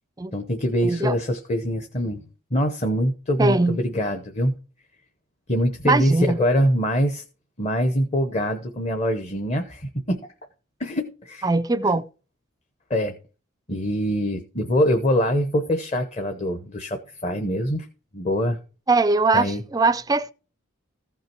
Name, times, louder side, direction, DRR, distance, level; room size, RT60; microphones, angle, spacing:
voice 1, 0.3-2.2 2.5-4.5 5.5-7.2 7.6-10.2 10.8-11.5 12.9-13.2 13.7-17.9 18.1-18.6 19.3-19.6, equal, 30° left, 0.8 m, -24 dB
voice 2, 0.8-1.1 3.4-3.8 5.8-6.4 11.4-12.0 18.9-20.3, right 3 dB, 15° right, 0.4 m, -21 dB
14.5 x 5.7 x 4.5 m
head